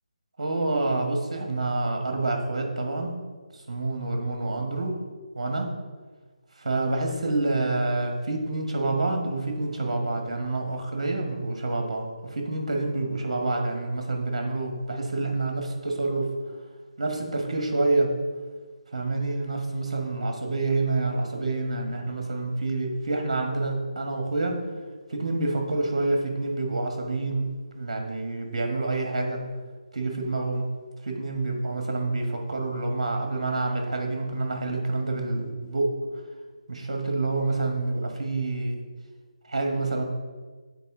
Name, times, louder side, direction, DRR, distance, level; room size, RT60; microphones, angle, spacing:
voice 1, 0.4-3.1 3.5-5.0 5.3-5.7 6.6-16.3 17.0-18.1 18.9-24.6 25.1-27.4 27.7-29.4 29.9-30.6 31.0-35.9 36.7-38.8 39.4-40.0, right 2 dB, 55° right, 3 dB, 1.2 m, -27 dB
7.4 x 4.1 x 3.7 m, 1.4 s
figure-of-eight pair, 155°, 4 cm